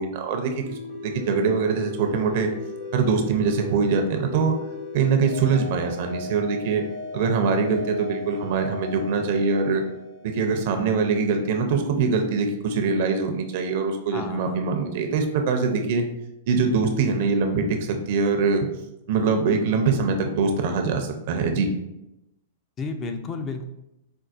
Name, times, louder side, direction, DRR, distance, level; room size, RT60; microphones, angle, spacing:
voice 1, 0.0-2.5 2.9-4.5 4.9-6.8 7.1-9.8 10.2-16.1 16.5-18.7 19.1-21.7, right 5 dB, 60° right, 5 dB, 0.5 m, -23 dB
sound 1, 0.6-11.0, left 3 dB, 60° left, 1.2 m, -37 dB
voice 2, 14.1-14.7 22.8-23.7, left 4 dB, 30° left, 6 dB, 0.3 m, -32 dB
4.4 x 2.2 x 2.4 m, 0.89 s
hypercardioid pair, 125°, 0 cm